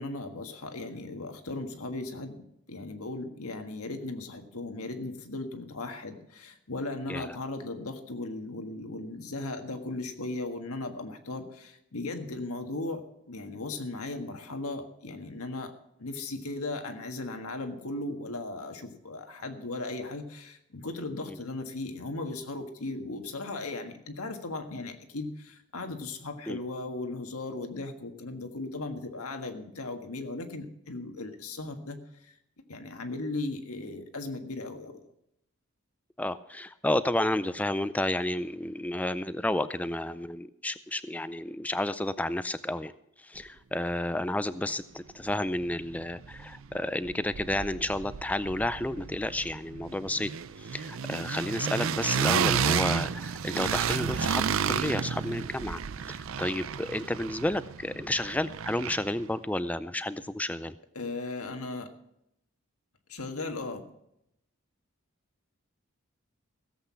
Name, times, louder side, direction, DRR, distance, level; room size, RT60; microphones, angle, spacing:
voice 1, 0.0-13.0 13.3-15.7 16.0-32.4 32.7-35.0 60.9-61.9 63.1-63.9, left 2 dB, 80° left, 6 dB, 1.6 m, -37 dB
voice 2, 36.2-42.9 43.2-50.3 50.6-60.8, left 1 dB, 5° left, 14 dB, 0.4 m, -31 dB
sound 1, 45.3-45.4 45.6-46.8 47.0-59.2, right 7 dB, 65° right, 0.5 m, -32 dB
16.5 x 8.2 x 5.8 m, 0.78 s
head